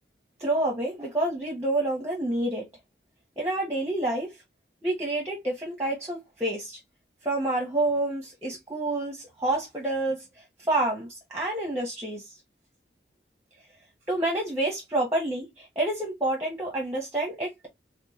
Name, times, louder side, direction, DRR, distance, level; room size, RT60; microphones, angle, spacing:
voice 1, 0.4-2.7 3.4-4.4 4.8-6.8 7.2-10.2 10.6-12.4 14.1-17.7, right 1 dB, 15° right, 1.0 m, -28 dB
4.2 x 2.3 x 3.0 m
head